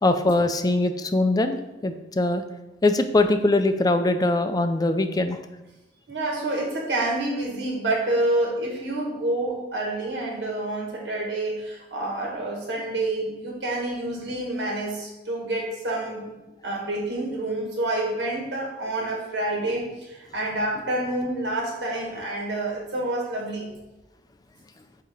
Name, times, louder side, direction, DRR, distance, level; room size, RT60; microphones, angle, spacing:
voice 1, 0.0-2.4 2.8-5.4, left 2 dB, 20° left, 8 dB, 0.4 m, -22 dB
voice 2, 6.1-16.3 16.6-23.7, right 2 dB, 85° right, -1 dB, 1.7 m, -28 dB
7.4 x 2.9 x 5.2 m, 1.0 s
head